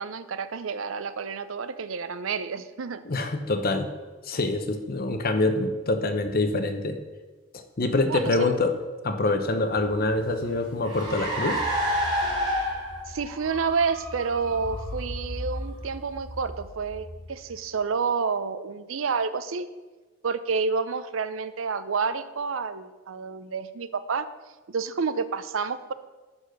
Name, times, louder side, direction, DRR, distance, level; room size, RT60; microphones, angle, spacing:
voice 1, 0.0-3.0 8.1-8.6 13.1-19.7 20.2-24.3 24.7-25.9, right 5 dB, 90° right, 13 dB, 0.6 m, -29 dB
voice 2, 3.0-3.9 4.2-7.0 7.5-8.7 9.0-11.6, left 2 dB, 50° left, 7 dB, 0.9 m, -25 dB
Car, 9.7-17.5, equal, 25° right, 3.3 m, -31 dB
11.5 x 4.2 x 6.6 m, 1.3 s
head